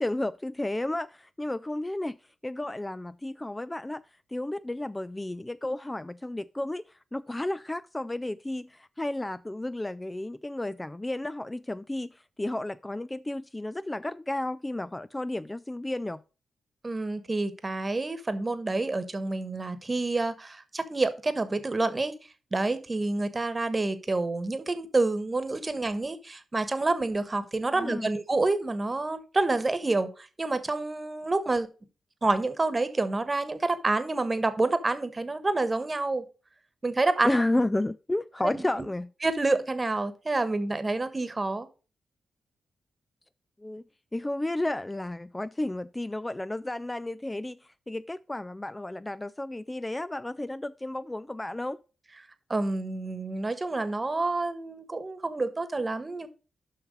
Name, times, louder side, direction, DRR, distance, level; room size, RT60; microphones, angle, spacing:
voice 1, 0.0-2.2 2.4-4.0 4.3-6.8 7.1-16.2 27.7-28.2 37.2-39.1 43.6-43.8 44.1-51.8, left 1 dB, 20° left, 0.3 m, -32 dB
voice 2, 16.8-22.1 22.5-31.7 32.2-36.2 36.8-37.4 38.4-38.7 39.2-41.7 52.5-56.3, right 2 dB, 30° right, 1.2 m, -28 dB
6.4 x 5.8 x 5.0 m
supercardioid pair, 50°, 0 cm